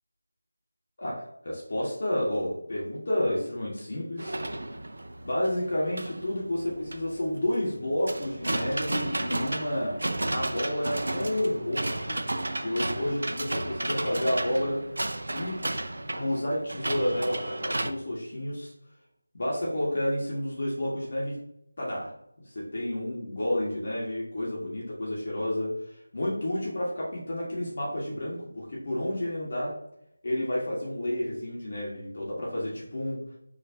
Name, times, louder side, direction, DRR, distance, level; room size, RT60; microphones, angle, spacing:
voice 1, 1.0-4.4 5.2-10.0 10.3-12.2 12.6-14.9 15.3-15.6 16.1-18.7 19.3-21.4 21.8-22.1 22.5-25.7 26.1-29.8 30.2-33.2, left 1 dB, 45° left, -5 dB, 1.5 m, -30 dB
sound 1, 4.2-17.9, right 1 dB, 65° right, 0.5 m, -33 dB
5.6 x 3.2 x 2.7 m, 0.75 s
figure-of-eight pair, 165°, 0 cm